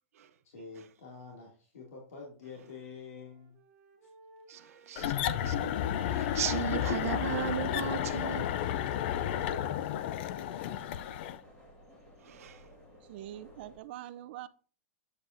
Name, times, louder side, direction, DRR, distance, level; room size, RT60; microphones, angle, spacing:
voice 1, 0.4-3.5, left 5 dB, 85° left, 2.3 m, -47 dB
Wind instrument woodwind instrument, 3.1-6.6 7.0-10.7, right 6 dB, 20° right, 1.7 m, -58 dB
voice 2, 4.5-5.7 6.0-8.5 12.2-12.6, right 9 dB, 75° right, 0.8 m, -36 dB
sound 1, 5.0-11.4, left 10 dB, 45° left, 0.4 m, -32 dB
sound 2, 5.6-13.8, equal, 15° left, 1.7 m, -57 dB
voice 3, 13.0-14.5, right 13 dB, 45° right, 0.5 m, -44 dB
8.4 x 7.6 x 2.6 m
supercardioid pair, 165°, 8 cm